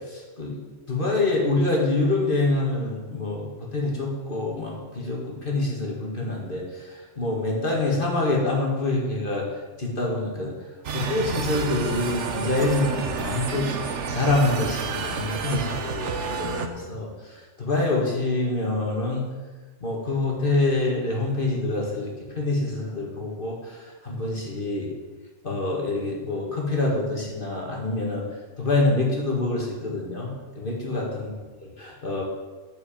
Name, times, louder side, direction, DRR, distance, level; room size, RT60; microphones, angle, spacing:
voice 1, 0.1-0.6 0.9-6.9 7.2-9.5 9.8-10.6 10.9-13.7 14.1-17.1 17.6-19.2 19.8-24.9 25.4-28.2 28.6-31.3 31.8-32.2, left 2 dB, 45° left, -2 dB, 2.1 m, -26 dB
sound 1, 10.8-16.7, right 5 dB, 70° right, 1.2 m, -30 dB
8.4 x 7.0 x 7.4 m, 1.3 s
omnidirectional pair, 1.3 m